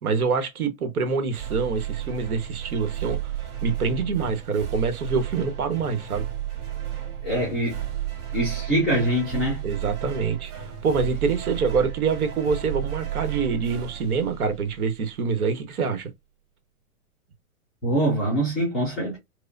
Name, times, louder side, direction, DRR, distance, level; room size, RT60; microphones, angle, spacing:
voice 1, 0.0-3.3 3.6-6.2 9.6-10.5 10.8-16.1, right 5 dB, 80° right, 1.3 m, -25 dB
sound 1, 1.3-15.0, right 11 dB, 35° right, 2.4 m, -33 dB
voice 2, 7.2-7.7 8.3-9.6 17.8-19.2, right 1 dB, ahead, 0.3 m, -24 dB
4.7 x 2.1 x 2.6 m
hypercardioid pair, 140°, 43 cm